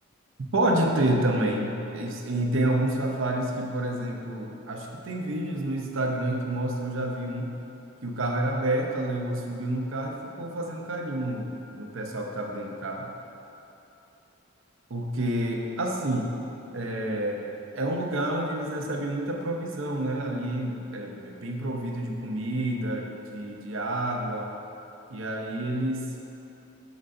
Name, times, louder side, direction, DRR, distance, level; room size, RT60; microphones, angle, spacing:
voice 1, 0.5-7.6 8.0-13.1 14.9-16.3 16.7-17.4 17.7-24.5 25.1-26.1, right 1 dB, 70° right, 1 dB, 0.7 m, -29 dB
6.6 x 4.0 x 5.2 m, 3.0 s
head